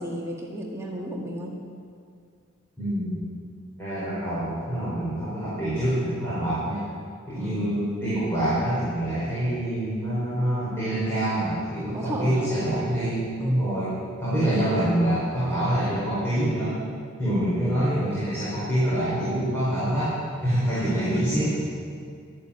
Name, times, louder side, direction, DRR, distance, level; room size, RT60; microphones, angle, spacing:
voice 1, 0.0-1.6 7.3-7.7 11.9-12.4 13.4-13.6 20.8-21.4, equal, 15° right, -3 dB, 1.9 m, -33 dB
voice 2, 2.8-3.2 3.8-6.9 7.3-13.9 14.2-16.8 17.2-20.1 20.4-21.5, right 1 dB, 10° left, -11 dB, 4.9 m, -26 dB
12.5 x 11.5 x 8.6 m, 2.2 s
head